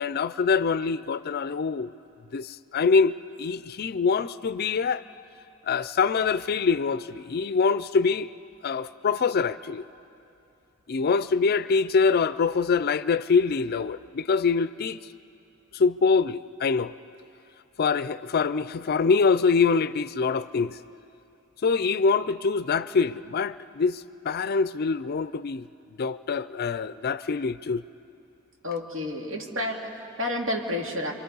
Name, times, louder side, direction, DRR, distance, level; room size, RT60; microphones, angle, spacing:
voice 1, 0.0-1.9 2.3-5.0 5.6-8.3 8.6-9.8 10.9-15.0 15.7-16.9 17.8-20.8 21.6-25.7 26.0-27.8, left 5 dB, 50° left, 0.4 m, -24 dB
voice 2, 28.6-31.1, left 1 dB, 70° right, 2.4 m, -30 dB
28.5 x 24.0 x 5.5 m
head